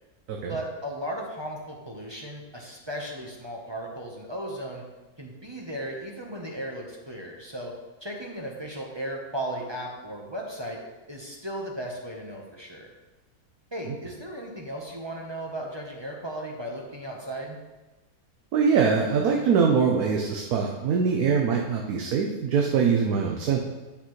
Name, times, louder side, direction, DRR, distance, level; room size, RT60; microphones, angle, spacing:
voice 1, 0.5-4.8 5.2-7.7 8.0-10.8 11.1-12.9 13.7-17.6, right 1 dB, 20° right, -1 dB, 0.9 m, -36 dB
voice 2, 18.5-23.6, right 6 dB, 75° right, 0 dB, 1.3 m, -23 dB
9.1 x 6.9 x 3.2 m, 1.1 s
omnidirectional pair, 1.7 m